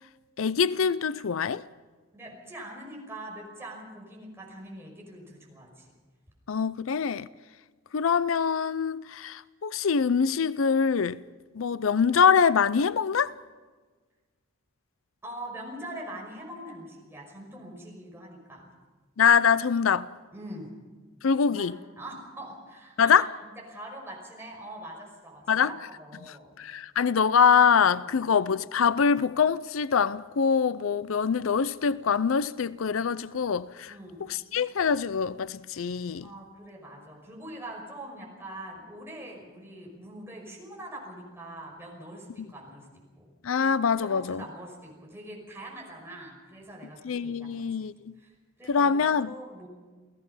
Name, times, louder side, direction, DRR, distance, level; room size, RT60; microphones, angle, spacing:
voice 1, 0.4-1.6 6.5-7.3 7.9-11.2 11.5-13.3 19.2-20.1 21.2-21.8 23.0-23.3 25.5-25.7 26.2-33.9 34.2-36.3 43.4-44.4 47.0-48.1 48.7-49.3, left 6 dB, 75° left, 0.5 m, -24 dB
voice 2, 2.1-5.9 15.2-18.7 20.3-20.7 21.5-21.7 22.0-23.2 23.7-26.6 28.0-28.3 33.9-34.3 36.2-42.9 43.2-43.3 44.0-47.6 47.8-47.9 48.2-48.3 48.6-49.7, right 1 dB, 10° right, 5.6 m, -43 dB
29.0 x 17.0 x 5.6 m
head